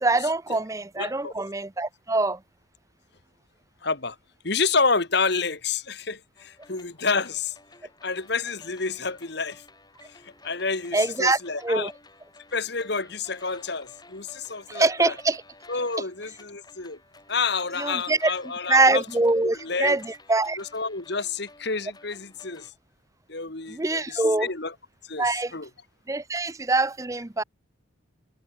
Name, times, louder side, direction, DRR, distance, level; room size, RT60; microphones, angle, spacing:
voice 1, 0.0-2.4 10.9-11.9 14.7-15.4 17.8-18.3 18.7-20.6 23.7-24.5 25.2-25.5 26.1-27.4, right 2 dB, 15° right, 0.5 m, -24 dB
voice 2, 1.0-1.3 3.8-4.2 4.4-7.6 8.0-9.6 10.1-11.9 12.5-15.2 15.7-17.0 17.3-19.1 19.4-20.0 20.6-22.7 23.3-24.7 25.0-25.7, left 4 dB, 55° left, 1.9 m, -29 dB
sound 1, 6.4-22.7, left 2 dB, 20° left, 6.0 m, -53 dB
head